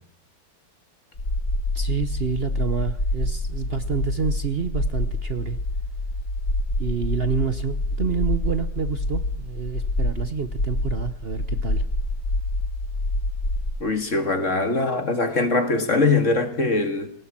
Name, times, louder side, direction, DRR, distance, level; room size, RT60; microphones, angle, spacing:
sound 1, 1.1-13.7, left 1 dB, 90° left, 5.5 m, -26 dB
voice 1, 1.7-5.6 6.8-11.8, right 6 dB, 45° right, 10 dB, 1.0 m, -28 dB
voice 2, 13.8-17.1, left 3 dB, 50° left, 8 dB, 2.3 m, -22 dB
19.0 x 18.5 x 7.5 m, 0.64 s
omnidirectional pair, 1.7 m